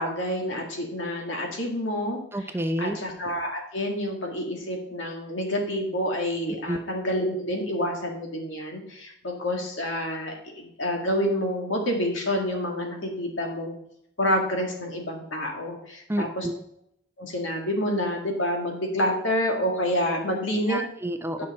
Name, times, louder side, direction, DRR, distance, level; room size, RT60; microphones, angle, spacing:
voice 1, 0.0-2.4 2.8-13.8 14.2-16.5 17.2-20.8, equal, 70° left, 2 dB, 2.0 m, -28 dB
voice 2, 2.3-3.0 6.7-6.8 16.1-16.6 20.7-21.5, right 1 dB, 10° right, 7 dB, 0.5 m, -29 dB
9.6 x 5.7 x 4.2 m, 0.74 s
head